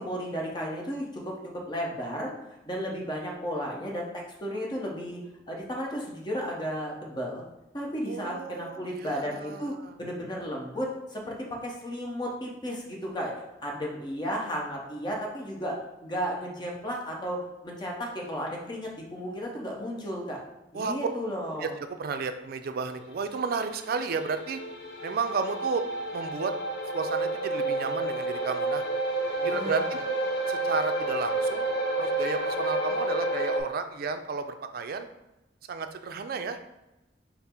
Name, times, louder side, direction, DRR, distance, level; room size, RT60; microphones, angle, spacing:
voice 1, 0.0-1.4 1.7-2.3 2.6-5.2 5.5-7.4 7.7-9.7 10.0-13.3 13.6-17.4 17.6-20.4 20.7-21.7 29.4-29.8, equal, 25° left, -2 dB, 0.8 m, -34 dB
voice 2, 8.1-9.9 20.7-21.0 21.6-24.6 25.0-25.8 26.1-26.5 26.9-28.8 29.4-30.1 30.5-31.7 32.0-35.1 35.7-36.6, right 4 dB, 55° right, 8 dB, 0.4 m, -32 dB
sound 1, 23.2-33.6, right 2 dB, 85° left, 0.9 m, -30 dB
5.6 x 2.0 x 4.4 m, 0.97 s
head